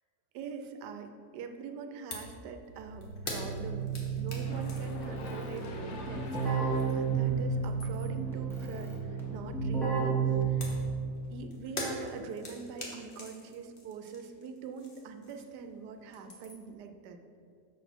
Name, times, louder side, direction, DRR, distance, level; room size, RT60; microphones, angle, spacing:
voice 1, 0.3-10.8 11.3-17.2, right 6 dB, 90° right, 6 dB, 1.2 m, -43 dB
sound 1, 2.1-2.4 2.7-7.1 7.5-8.3 10.6-15.7 16.0-16.8, left 2 dB, 40° left, 1.1 m, -44 dB
Keyboard (musical), 2.8-11.0, right 5 dB, ahead, 1.1 m, -32 dB
sound 2, 4.2-8.4, left 2 dB, 55° left, 0.9 m, -47 dB
6.7 x 4.0 x 6.0 m, 2.4 s
omnidirectional pair, 1.7 m